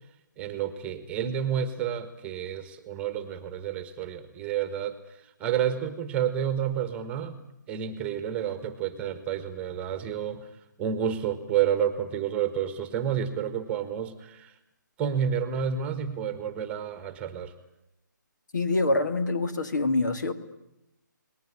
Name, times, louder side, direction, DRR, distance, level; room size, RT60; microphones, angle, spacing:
voice 1, 0.4-7.3 7.7-10.5 10.8-14.5 15.0-17.5, right 8 dB, 10° right, 11 dB, 1.5 m, -30 dB
voice 2, 18.5-20.3, left 2 dB, 65° left, 9 dB, 2.7 m, -25 dB
29.5 x 19.5 x 10.0 m, 0.90 s
figure-of-eight pair, 155°, 11 cm